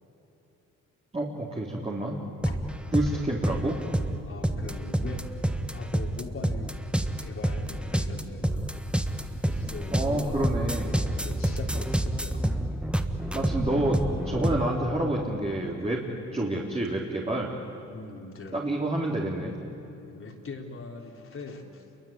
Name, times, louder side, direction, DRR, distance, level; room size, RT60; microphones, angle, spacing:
voice 1, 1.1-2.2 2.9-3.8 9.9-11.0 13.3-16.0 16.3-17.5 18.5-19.6, right 1 dB, 20° right, -2 dB, 3.6 m, -28 dB
sound 1, 2.4-14.7, right 1 dB, 5° right, 1.5 m, -29 dB
voice 2, 2.5-3.0 3.3-3.5 4.2-5.2 5.7-8.7 9.4-10.4 11.1-12.4 12.8-12.9 16.1-16.4 17.9-18.7 19.9-21.8, left 4 dB, 45° left, 2 dB, 3.8 m, -42 dB
28.0 x 23.0 x 8.8 m, 3.0 s
cardioid pair, 90°, 30 cm